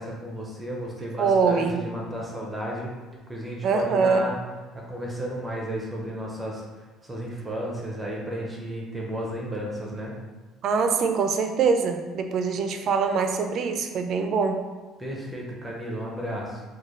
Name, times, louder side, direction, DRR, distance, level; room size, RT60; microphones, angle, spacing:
voice 1, 0.0-2.9 3.3-4.4 4.7-6.6 7.0-10.1 15.0-16.6, equal, 10° right, -3 dB, 0.6 m, -33 dB
voice 2, 1.2-1.9 3.6-4.3 10.6-14.6, right 5 dB, 55° right, 6 dB, 0.3 m, -23 dB
3.1 x 2.2 x 3.7 m, 1.3 s
cardioid pair, 110°, 0 cm